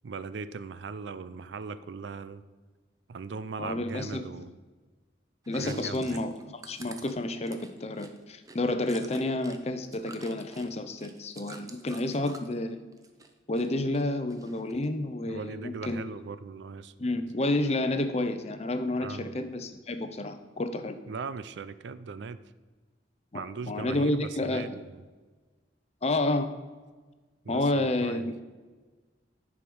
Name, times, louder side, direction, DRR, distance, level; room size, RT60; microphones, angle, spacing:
voice 1, 0.0-2.4 3.1-4.5 5.5-6.2 15.3-16.9 19.0-19.4 21.1-22.4 23.3-25.0 27.4-28.3, right 4 dB, 80° right, 0.4 m, -39 dB
voice 2, 3.6-4.2 5.5-12.8 13.5-16.0 17.0-21.0 23.3-24.7 26.0-26.5 27.5-28.3, left 2 dB, 35° left, 0.6 m, -30 dB
Chewing mastication, 5.4-9.6 9.8-12.5 12.9-13.7 13.9-14.9, right 3 dB, 20° right, 0.6 m, -48 dB
10.0 x 4.9 x 5.4 m
head